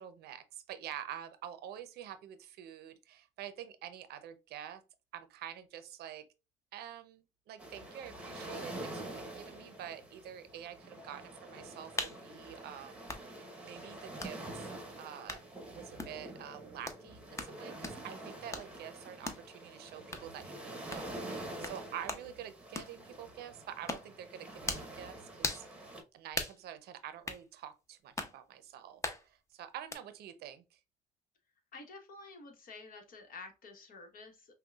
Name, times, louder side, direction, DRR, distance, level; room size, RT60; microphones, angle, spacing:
voice 1, 0.0-4.8 5.1-6.3 6.7-15.4 15.7-30.8, right 10 dB, 70° right, 0.6 m, -47 dB
sound 1, 7.6-26.0, right 1 dB, 5° right, 1.0 m, -46 dB
sound 2, 12.0-12.2 13.1-13.2 14.2-14.3 15.3-15.5 16.0-16.2 16.9-17.0 17.4-17.6 17.8-18.0 18.5-18.7 19.2-19.4 20.1-20.3 20.9-21.1 21.6-21.8 22.1-22.3 22.7-22.9 23.9-24.1 24.6-24.9 25.4-25.7 26.3-26.6 27.2-27.4 28.2-28.4 29.0-29.2 29.9-30.0, left 2 dB, 15° left, 0.7 m, -38 dB
voice 2, 31.7-34.5, left 3 dB, 55° left, 1.2 m, -50 dB
5.4 x 2.2 x 2.3 m
cardioid pair, 110°, 17 cm